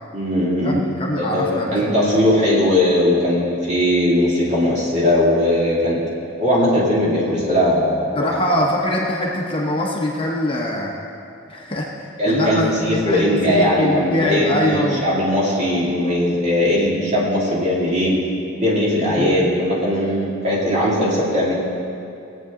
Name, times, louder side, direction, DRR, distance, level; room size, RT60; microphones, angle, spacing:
voice 1, 0.1-0.8 1.2-6.0 6.4-8.3 12.2-18.2 18.6-21.5, left 1 dB, 35° right, -6 dB, 2.6 m, -19 dB
voice 2, 0.6-2.0 8.1-11.0 11.5-15.0 19.2-19.4, left 1 dB, 25° left, -2 dB, 1.0 m, -23 dB
18.5 x 8.1 x 3.8 m, 2.6 s
head